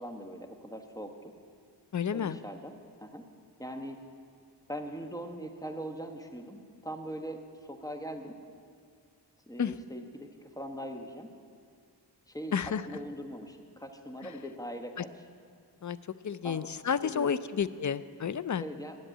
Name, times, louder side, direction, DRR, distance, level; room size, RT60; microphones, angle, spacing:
voice 1, 0.0-1.3 2.1-2.7 3.0-3.2 3.6-4.0 4.7-7.4 7.7-8.4 9.5-11.3 12.3-12.6 12.9-15.1 16.4-16.7 17.0-17.3 18.6-19.0, equal, 10° left, 4 dB, 1.1 m, -41 dB
voice 2, 1.9-2.4 9.6-9.7 12.5-12.8 14.2-14.3 15.8-16.0 16.2-18.6, left 7 dB, 45° left, 15 dB, 0.5 m, -31 dB
11.0 x 7.8 x 8.9 m, 2.2 s
wide cardioid pair, 65°, 41 cm